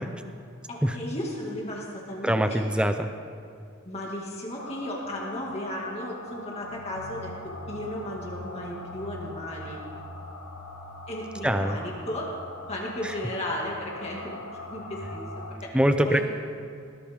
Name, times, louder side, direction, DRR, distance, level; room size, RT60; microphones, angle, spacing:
voice 1, 0.7-2.6 3.8-7.3 7.7-9.8 11.1-12.3 12.7-14.4 14.7-15.7 16.1-16.2, left 1 dB, 30° left, -3 dB, 2.2 m, -35 dB
voice 2, 2.2-3.1 11.4-11.8 15.7-16.2, equal, 5° right, 7 dB, 0.6 m, -23 dB
sound 1, 4.6-15.6, left 1 dB, 85° left, 1.8 m, -41 dB
20.5 x 16.0 x 3.7 m, 2.3 s
head